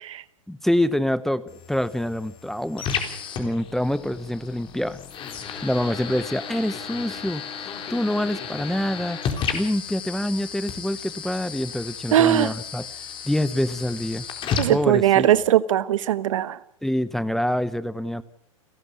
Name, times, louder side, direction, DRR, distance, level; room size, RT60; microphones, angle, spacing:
voice 1, 0.5-2.9 3.4-5.0 5.6-9.2 9.5-12.9 13.2-14.2 14.7-15.3 16.8-18.2, left 1 dB, ahead, 16 dB, 0.8 m, -26 dB
sound 1, 1.5-15.5, left 7 dB, 30° left, 4.2 m, -33 dB
voice 2, 12.1-12.5 14.6-16.6, right 11 dB, 70° right, 16 dB, 1.3 m, -19 dB
29.5 x 12.0 x 8.4 m, 0.70 s
hypercardioid pair, 120°, 17 cm